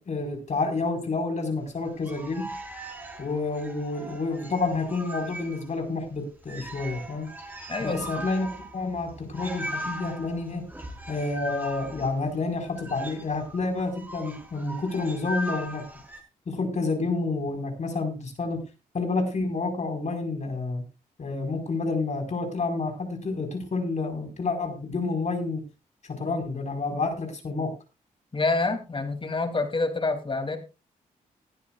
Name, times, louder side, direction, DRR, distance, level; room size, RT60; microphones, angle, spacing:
voice 1, 0.0-2.6 3.2-7.3 7.8-10.7 11.1-15.8 16.5-18.6 18.9-20.8 21.2-25.6 26.1-27.8, left 3 dB, 50° left, 4 dB, 4.9 m, -29 dB
sound 1, 1.9-5.8 6.1-6.2 6.4-16.2, right 1 dB, 10° right, 4.9 m, -39 dB
voice 2, 7.7-8.3 28.3-30.6, left 3 dB, 35° left, 6 dB, 3.0 m, -27 dB
19.5 x 11.5 x 2.5 m, 0.29 s
supercardioid pair, 55°, 15 cm